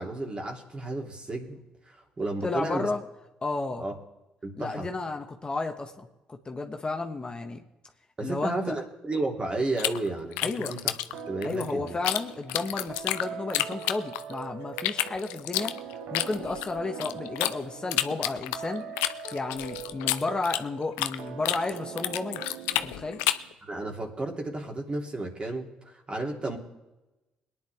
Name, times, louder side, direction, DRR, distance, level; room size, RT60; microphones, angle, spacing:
voice 1, 0.0-1.6 1.9-2.9 3.8-3.9 4.4-4.9 8.2-10.9 11.3-12.0 23.6-25.7 26.1-26.6, right 2 dB, 30° right, 1 dB, 3.0 m, -32 dB
voice 2, 2.4-3.0 3.4-3.8 4.6-7.6 8.2-8.8 10.4-10.8 11.4-15.8 16.1-18.8 19.3-22.4 22.8-23.2, left 3 dB, 30° left, 4 dB, 1.4 m, -32 dB
sound 1, 9.8-12.2 12.5-14.4 14.8-17.5 17.9-21.2 21.4-23.5, left 15 dB, 80° left, 0.5 m, -29 dB
sound 2, 11.1-23.5, right 7 dB, 70° right, 1.2 m, -42 dB
22.0 x 10.0 x 3.5 m, 1.0 s
hypercardioid pair, 55°, 3 cm